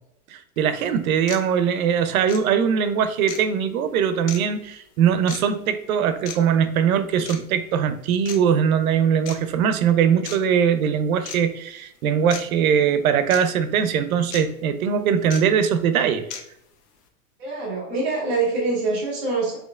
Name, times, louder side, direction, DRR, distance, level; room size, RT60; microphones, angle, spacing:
voice 1, 0.3-16.3, right 7 dB, 65° right, 10 dB, 0.5 m, -21 dB
sound 1, 0.6-0.7 1.3-1.4 2.3-2.4 3.3-3.4 4.3-4.4 5.3-5.4 6.3-6.4 7.3-7.4 8.3-8.4 9.3-9.4 10.3-10.4 11.3-11.4 12.3-12.4 13.3-13.4 14.3-14.4 15.3-15.4 16.3-16.4, left 7 dB, 85° left, 0.8 m, -34 dB
voice 2, 17.4-19.6, right 3 dB, 10° right, -14 dB, 0.3 m, -24 dB
4.3 x 2.8 x 2.3 m, 0.77 s
supercardioid pair, 180°, 45 cm